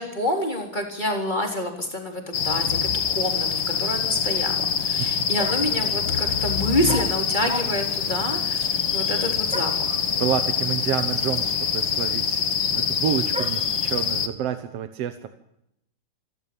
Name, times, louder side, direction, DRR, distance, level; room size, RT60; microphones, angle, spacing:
voice 1, 0.0-2.9 3.1-10.0, left 1 dB, 15° left, 3 dB, 3.9 m, -28 dB
sound 1, 2.3-14.3, left 7 dB, 45° left, 1.7 m, -25 dB
sound 2, 5.4-5.8 6.9-8.0 9.5-9.9 10.8-10.9 11.1-13.8, right 1 dB, 5° right, 1.1 m, -35 dB
voice 2, 10.2-15.3, right 9 dB, 60° right, 10 dB, 1.8 m, -29 dB
28.0 x 13.5 x 8.9 m, 0.79 s
omnidirectional pair, 3.8 m